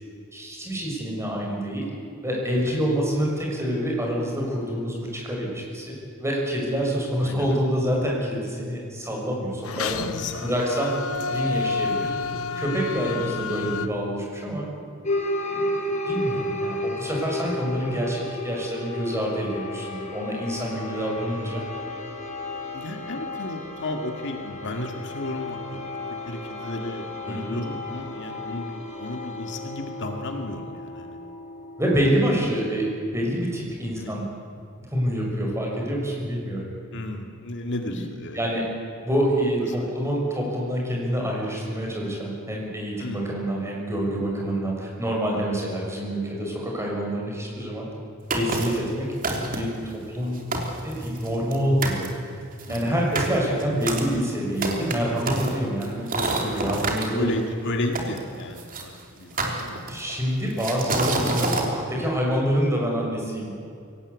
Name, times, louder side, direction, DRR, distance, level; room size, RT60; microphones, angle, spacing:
voice 1, 0.3-1.8 2.2-10.0 10.4-10.9 11.3-12.1 12.6-14.6 15.5-21.6 27.3-27.5 31.8-34.2 34.7-36.7 37.9-38.0 38.3-38.6 39.0-47.9 48.3-49.0 49.5-50.4 50.8-52.1 52.7-57.3 59.9-63.5, equal, 15° right, -2 dB, 6.5 m, -27 dB
voice 2, 2.2-2.8 7.2-7.6 10.0-10.5 20.7-20.8 22.7-31.2 34.0-34.1 36.9-38.4 39.6-39.9 43.0-43.3 52.7-53.4 56.6-56.7 57.1-59.8, left 1 dB, 60° left, 4 dB, 2.1 m, -33 dB
sound 1, 9.6-13.9, left 4 dB, 75° left, 1.2 m, -29 dB
sound 2, 15.0-32.2, left 1 dB, 35° left, 4.5 m, -33 dB
sound 3, 48.3-48.8 49.2-49.8 50.2-50.3 50.5-51.6 51.8-52.1 52.6-57.1 57.9-58.8 59.4-60.1 60.6-61.7, right 2 dB, 40° right, 3.2 m, -27 dB
24.0 x 18.0 x 8.3 m, 2.4 s
head